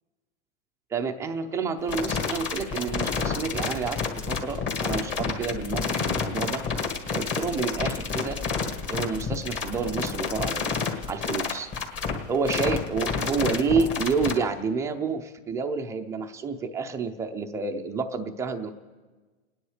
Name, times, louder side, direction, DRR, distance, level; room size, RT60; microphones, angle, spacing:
voice 1, 0.9-6.6 7.1-10.7 11.1-11.7 12.3-18.7, right 4 dB, 5° right, 5 dB, 0.4 m, -29 dB
sound 1, 1.9-14.3, left 5 dB, 25° left, 1.9 m, -29 dB
29.0 x 10.0 x 4.8 m, 1.4 s
supercardioid pair, 145°, 41 cm